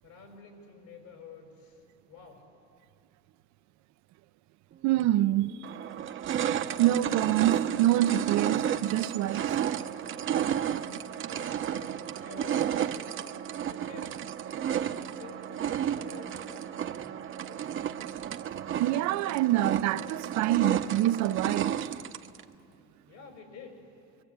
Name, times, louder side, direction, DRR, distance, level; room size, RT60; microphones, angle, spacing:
voice 1, 0.0-2.4 10.6-13.4 13.7-14.2 14.9-17.8 23.1-23.9, left 5 dB, 75° left, 6.5 m, -50 dB
voice 2, 4.8-5.6 6.4-9.5 18.8-21.9, right 13 dB, 70° right, 0.7 m, -26 dB
sound 1, 5.0-5.1 5.6-22.4, right 9 dB, 45° right, 0.9 m, -32 dB
25.5 x 24.0 x 8.7 m
cardioid pair, 120°, 29 cm